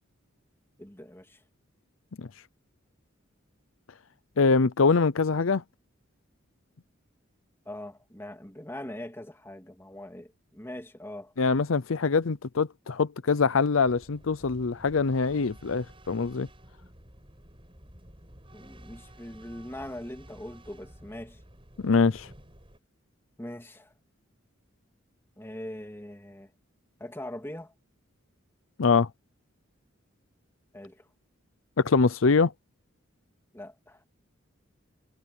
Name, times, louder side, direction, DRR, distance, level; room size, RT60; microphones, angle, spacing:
voice 1, 0.8-1.4 7.7-11.3 18.5-21.4 23.4-23.9 25.4-26.5 27.0-27.7 30.7-31.0 33.5-34.0, left 1 dB, 10° left, 2.8 m, -41 dB
voice 2, 4.4-5.6 11.4-16.5 21.8-22.3 28.8-29.1 31.8-32.5, left 4 dB, 75° left, 0.6 m, -23 dB
sound 1, 13.8-22.8, right 1 dB, 25° right, 6.6 m, -52 dB
head